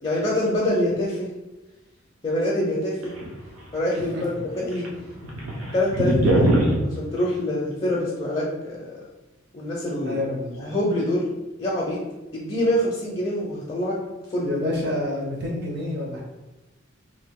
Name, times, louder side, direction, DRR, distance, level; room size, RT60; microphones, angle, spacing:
voice 1, 0.0-1.3 2.2-3.1 3.7-4.9 5.7-6.5 6.8-9.0 9.5-10.2 10.6-11.3 11.6-12.0 12.3-14.0 14.3-14.5, left 1 dB, 25° left, -4 dB, 0.4 m, -25 dB
sound 1, 3.0-4.0 4.3-4.4 4.7-6.8, right 1 dB, 85° right, 0.7 m, -21 dB
voice 2, 10.0-10.6 14.4-16.2, left 1 dB, 50° right, -1 dB, 0.6 m, -28 dB
2.8 x 2.4 x 3.5 m, 1.1 s
head